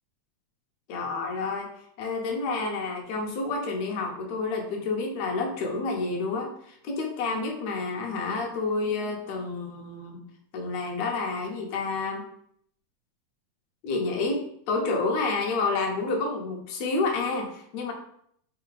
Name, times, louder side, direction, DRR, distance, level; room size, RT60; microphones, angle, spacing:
voice 1, 0.9-1.7 2.0-10.2 10.5-12.2 13.8-17.9, left 3 dB, 65° left, 2 dB, 2.0 m, -29 dB
5.5 x 4.3 x 4.0 m, 0.68 s
omnidirectional pair, 3.9 m